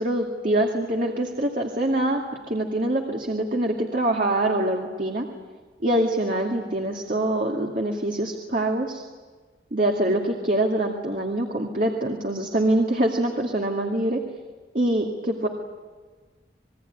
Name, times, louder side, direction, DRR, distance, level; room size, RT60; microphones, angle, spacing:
voice 1, 0.0-2.2 2.5-5.3 5.8-9.0 9.7-14.2 14.7-15.5, right 1 dB, 50° right, 1 dB, 2.2 m, -24 dB
27.5 x 21.0 x 9.4 m, 1.4 s
head